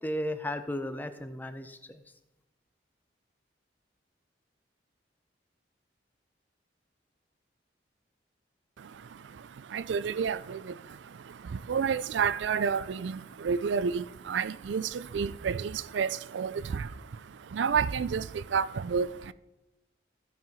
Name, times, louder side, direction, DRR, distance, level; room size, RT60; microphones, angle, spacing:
voice 1, 0.0-2.0, left 1 dB, 10° left, 0.6 m, -35 dB
voice 2, 8.8-19.3, right 6 dB, 80° right, 0.4 m, -31 dB
15.5 x 5.7 x 4.5 m
head